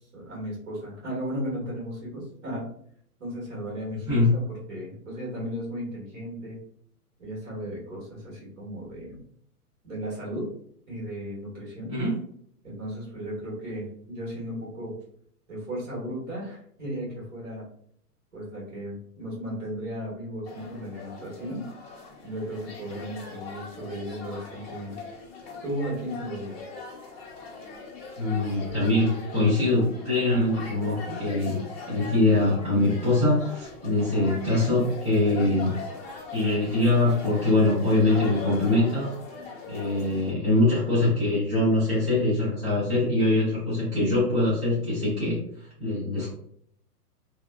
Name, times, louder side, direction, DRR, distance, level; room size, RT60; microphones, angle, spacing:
voice 1, 0.1-2.6 3.2-4.4 4.7-6.6 7.2-9.2 9.8-10.5 10.9-11.9 12.6-14.9 15.5-17.6 18.3-21.6 22.2-24.9 25.6-26.6, equal, 50° right, -4 dB, 1.4 m, -35 dB
sound 1, 20.4-40.3, left 4 dB, 40° left, 0.8 m, -41 dB
voice 2, 28.2-31.6 31.9-35.7 36.3-39.1 39.7-45.4 45.8-46.3, left 2 dB, 20° right, -13 dB, 0.6 m, -23 dB
2.9 x 2.2 x 2.2 m, 0.66 s
hypercardioid pair, 175°, 47 cm